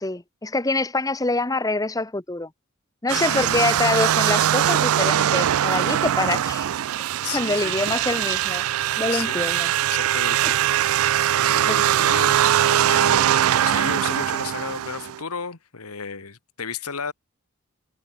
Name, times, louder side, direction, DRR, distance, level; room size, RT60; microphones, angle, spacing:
voice 1, 0.0-2.5 3.0-6.7 7.0-7.1 7.3-8.6 9.0-9.7 11.7-11.9, left 2 dB, 15° left, 0.9 m, -25 dB
sound 1, 3.1-15.2, right 11 dB, 70° right, 0.4 m, -21 dB
voice 2, 3.3-3.8 7.2-7.8 9.1-9.4 9.9-10.8 11.4-17.1, left 5 dB, 85° left, 1.8 m, -34 dB
head